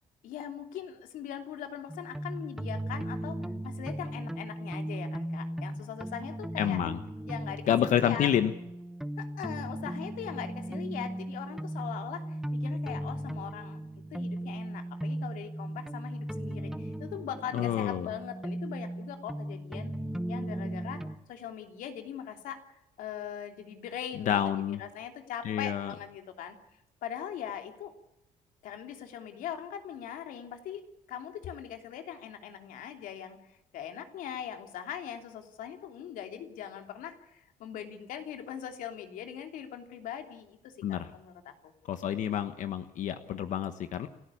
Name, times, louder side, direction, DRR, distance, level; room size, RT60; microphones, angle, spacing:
voice 1, 0.2-3.4 3.6-6.8 7.3-8.3 9.2-19.9 20.3-21.0 21.3-22.6 23.0-24.4 24.8-26.6 27.0-27.9 28.6-30.8 31.1-41.7, left 9 dB, 85° left, 6 dB, 3.1 m, -41 dB
sound 1, 1.9-21.1, right 1 dB, 5° right, 1.0 m, -37 dB
voice 2, 6.6-7.0 7.7-8.5 17.5-18.1 24.2-24.8 25.4-25.9 40.8-41.1 41.9-44.1, left 10 dB, 65° left, 10 dB, 1.2 m, -28 dB
29.5 x 13.5 x 8.5 m, 0.87 s
cardioid pair, 125°, 14 cm